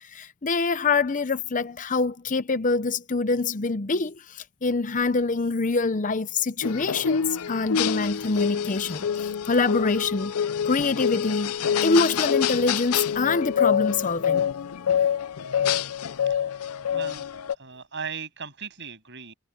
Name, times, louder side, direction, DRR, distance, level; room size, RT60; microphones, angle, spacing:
voice 1, 0.1-10.3 10.6-11.5 11.8-14.4, left 3 dB, 35° left, 0.7 m, -25 dB
sound 1, 6.6-17.5, left 8 dB, 80° left, 0.5 m, -26 dB
voice 2, 16.3-17.3 17.5-19.3, right 6 dB, 55° right, 7.8 m, -38 dB
head